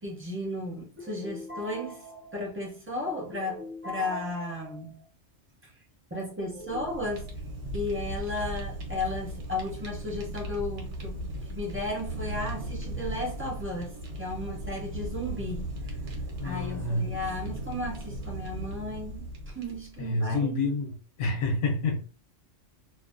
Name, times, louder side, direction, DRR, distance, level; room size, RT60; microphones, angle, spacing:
voice 1, 0.0-5.0 6.1-7.3 7.7-11.2 11.5-15.7 16.4-20.5, left 2 dB, 15° right, 0.4 m, -34 dB
Fire, 6.6-20.0, right 1 dB, 75° right, 1.0 m, -37 dB
voice 2, 16.4-17.1 20.0-22.0, left 2 dB, 75° left, 0.9 m, -28 dB
2.5 x 2.0 x 2.4 m
omnidirectional pair, 1.3 m